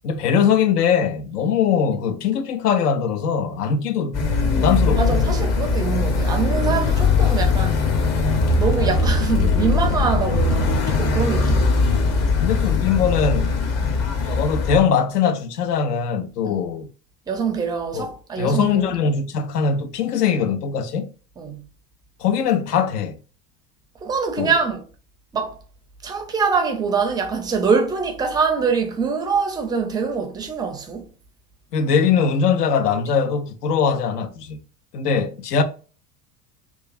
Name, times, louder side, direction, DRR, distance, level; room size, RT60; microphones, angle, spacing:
voice 1, 0.0-4.2 4.5-5.3 12.4-13.5 14.2-16.9 17.9-18.1 18.4-21.1 22.2-23.2 24.4-24.5 31.7-34.6 34.9-35.6, left 6 dB, 80° left, 0.6 m, -21 dB
sound 1, 4.1-14.8, left 4 dB, 35° left, 0.7 m, -20 dB
voice 2, 5.0-7.9 8.6-11.7 13.8-13.9 16.4-16.6 17.3-18.8 21.4-21.7 24.0-24.8 25.3-25.6 26.0-31.1, right 5 dB, 10° right, 0.3 m, -24 dB
3.0 x 2.3 x 2.4 m
hypercardioid pair, 75°, 46 cm